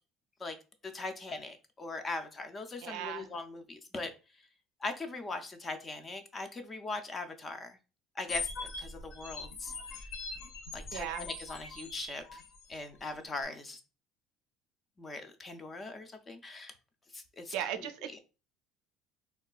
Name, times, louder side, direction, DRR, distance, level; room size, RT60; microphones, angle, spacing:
voice 1, 0.8-4.1 4.8-7.8 8.2-9.7 10.7-12.4 12.7-13.8 15.0-16.7 17.1-18.2, left 3 dB, 15° left, 0.3 m, -40 dB
voice 2, 2.8-3.3 10.9-11.3 17.5-18.0, right 10 dB, 65° right, 0.4 m, -36 dB
sound 1, 8.3-12.8, left 4 dB, 50° left, 0.6 m, -41 dB
3.6 x 2.2 x 2.3 m
cardioid pair, 170°, 0 cm